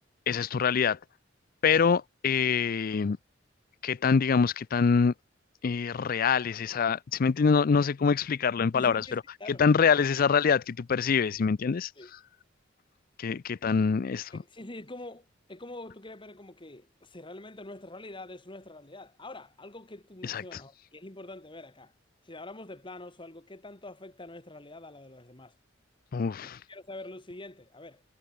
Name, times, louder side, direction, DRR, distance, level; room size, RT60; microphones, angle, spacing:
voice 1, 0.3-1.0 1.6-3.2 3.8-5.1 5.6-9.2 9.6-11.9 13.2-14.3 20.2-20.4 26.1-26.6, left 6 dB, 50° left, 0.4 m, -25 dB
voice 2, 8.7-9.6 12.0-12.1 14.3-21.9 22.2-25.5 26.4-28.0, left 2 dB, 25° left, 2.2 m, -45 dB
head